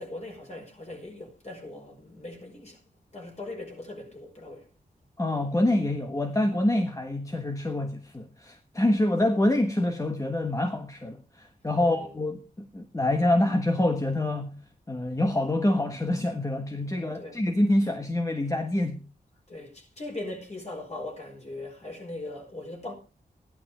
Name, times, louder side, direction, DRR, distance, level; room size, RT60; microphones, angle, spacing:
voice 1, 0.0-2.8 3.1-4.7 11.7-12.2 16.9-17.4 19.5-22.9, left 2 dB, 40° left, 5.4 m, -40 dB
voice 2, 5.2-14.6 14.9-19.0, left 1 dB, 20° left, 1.3 m, -26 dB
14.0 x 11.5 x 5.0 m
wide cardioid pair, 95°, 17 cm